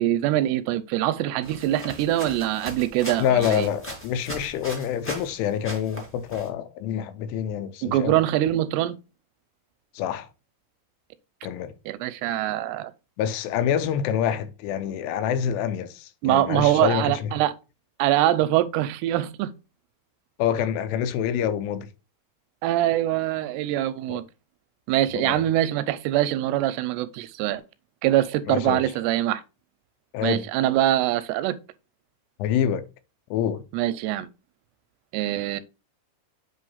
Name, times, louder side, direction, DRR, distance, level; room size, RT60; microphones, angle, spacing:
voice 1, 0.0-3.7 7.8-9.0 11.9-12.9 16.2-17.5 18.0-19.5 22.6-24.2 24.9-27.6 28.0-29.4 30.2-31.6 33.7-34.3 35.1-35.6, right 13 dB, 85° right, 2.7 m, -23 dB
sound 1, 1.4-5.3 5.6-6.5, equal, 10° left, 0.8 m, -38 dB
voice 2, 3.2-8.2 9.9-10.3 11.4-11.7 13.2-17.3 20.4-21.9 24.1-24.2 25.1-25.4 28.5-28.8 30.1-30.5 32.4-32.9 33.3-33.6, left 9 dB, 90° left, 2.9 m, -26 dB
8.3 x 3.1 x 5.5 m
omnidirectional pair, 4.7 m